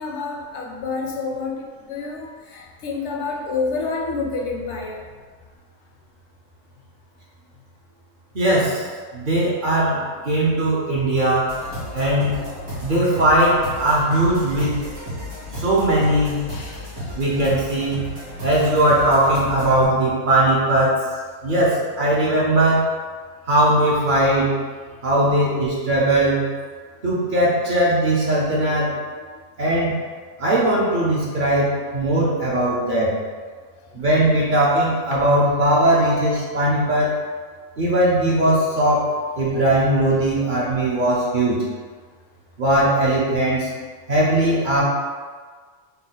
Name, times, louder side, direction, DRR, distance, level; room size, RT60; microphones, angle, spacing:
voice 1, 0.0-5.0 16.5-16.8, left 4 dB, 70° left, 0 dB, 0.8 m, -28 dB
voice 2, 8.3-8.9 9.1-11.5 11.9-12.4 12.8-14.9 15.6-16.4 17.2-18.1 18.4-21.0 21.4-22.9 23.5-24.6 25.0-26.5 27.0-29.0 29.6-30.0 30.4-33.2 33.9-37.1 37.8-41.6 42.6-43.7 44.1-44.8, right 1 dB, 50° right, -6 dB, 0.8 m, -19 dB
sound 1, 11.5-19.9, equal, 65° right, 1.8 m, -33 dB
4.1 x 2.2 x 3.9 m, 1.5 s
omnidirectional pair, 1.3 m